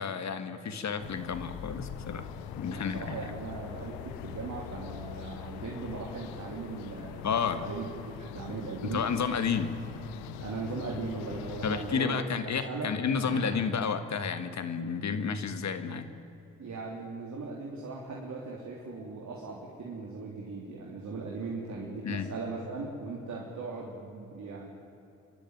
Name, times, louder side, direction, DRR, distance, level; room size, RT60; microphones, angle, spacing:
voice 1, 0.0-2.3 2.6-3.0 7.2-7.6 8.9-9.7 11.6-16.1 22.0-22.3, left 6 dB, 55° left, 9 dB, 1.8 m, -31 dB
sound 1, 1.0-12.0, left 10 dB, 85° left, 0.8 m, -43 dB
voice 2, 2.6-7.2 7.6-7.9 8.2-9.0 10.4-12.9 13.3-13.5 16.6-24.7, right 4 dB, 55° right, -3 dB, 3.5 m, -38 dB
27.0 x 11.5 x 9.3 m, 3.0 s
hypercardioid pair, 45°, 34 cm